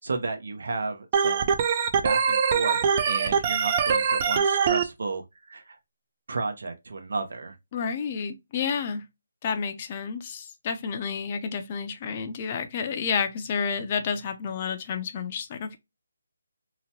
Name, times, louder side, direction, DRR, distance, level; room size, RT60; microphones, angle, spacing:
voice 1, 0.0-1.5 2.0-2.8 3.1-5.8 6.3-7.5, right 3 dB, 70° right, 0.6 m, -32 dB
Organ, 1.1-4.8, right 6 dB, 30° right, 0.4 m, -23 dB
voice 2, 7.7-9.0 9.4-15.8, left 6 dB, 30° left, 0.5 m, -30 dB
2.9 x 2.1 x 2.8 m
figure-of-eight pair, 160°, 0 cm